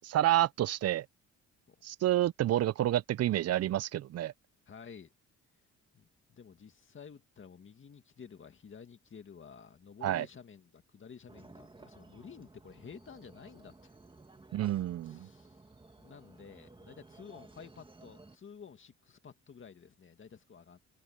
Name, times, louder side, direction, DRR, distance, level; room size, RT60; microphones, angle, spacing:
voice 1, 0.0-1.1 1.8-4.3 10.0-10.3 14.5-15.3, right 13 dB, 55° right, 0.5 m, -29 dB
voice 2, 4.7-5.1 5.9-13.9 15.0-15.6 16.0-20.8, left 6 dB, 40° left, 2.0 m, -52 dB
sound 1, 11.3-18.4, right 2 dB, 15° right, 2.2 m, -56 dB
cardioid pair, 90°, 30 cm